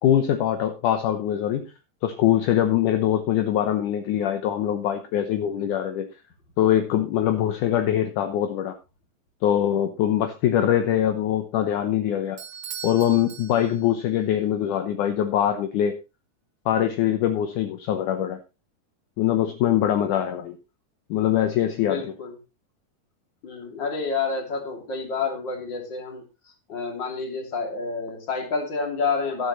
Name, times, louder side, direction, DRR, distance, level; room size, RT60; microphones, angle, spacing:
voice 1, 0.0-1.7 2.0-6.1 6.6-8.7 9.4-12.4 12.8-15.9 16.7-18.4 19.2-20.6 21.1-22.0, left 11 dB, 70° left, 7 dB, 1.9 m, -23 dB
Bell / Doorbell, 12.4-14.1, right 7 dB, 80° right, 1.3 m, -39 dB
voice 2, 21.8-22.3 23.4-29.5, left 4 dB, 30° left, 3 dB, 2.9 m, -29 dB
12.0 x 12.0 x 3.1 m, 0.28 s
omnidirectional pair, 4.6 m